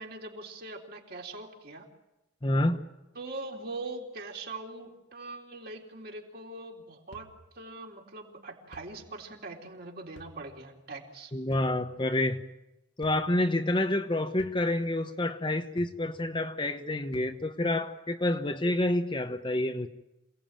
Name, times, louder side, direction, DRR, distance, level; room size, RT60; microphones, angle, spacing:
voice 1, 0.0-1.9 3.2-7.3 7.6-11.3, right 2 dB, 50° right, 3.7 m, -42 dB
voice 2, 2.4-2.8 11.3-12.4 13.0-19.9, left 1 dB, 25° left, 1.0 m, -28 dB
sound 1, 7.1-7.5 8.7-9.1 10.2-10.6 11.5-11.9 13.0-13.4 14.4-14.8 15.8-16.2 17.1-17.3, left 1 dB, 60° left, 1.8 m, -51 dB
27.5 x 18.0 x 9.0 m
head